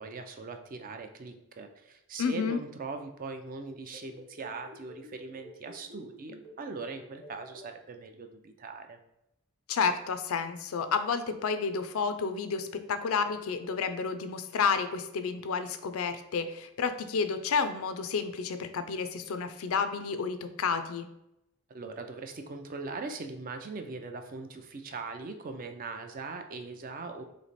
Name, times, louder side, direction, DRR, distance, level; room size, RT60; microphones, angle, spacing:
voice 1, 0.0-9.0 21.7-27.2, right 3 dB, 40° right, 6 dB, 0.4 m, -40 dB
voice 2, 2.2-2.6 9.7-21.1, left 5 dB, 70° left, 10 dB, 0.4 m, -30 dB
sound 1, 3.8-7.6, right 1 dB, 80° right, 0.9 m, -49 dB
3.2 x 3.2 x 4.0 m, 0.82 s
head